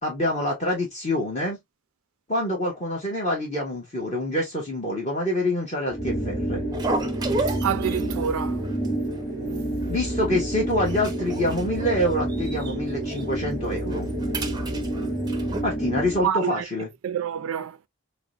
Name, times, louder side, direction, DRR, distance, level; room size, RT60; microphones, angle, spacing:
voice 1, 0.0-1.6 2.3-6.6 9.9-14.1 15.6-16.9, left 1 dB, 30° left, 1.2 m, -26 dB
sound 1, 5.9-16.3, right 1 dB, 15° left, 1.9 m, -29 dB
sound 2, 6.7-8.3 8.6-8.9 9.1-9.2 9.8-10.3 10.7-12.7 13.1-13.2 13.7-15.6, right 2 dB, 20° right, 0.5 m, -33 dB
voice 2, 7.5-8.6 16.2-16.7 17.0-17.9, right 8 dB, 75° right, 0.3 m, -27 dB
4.8 x 2.1 x 2.3 m
head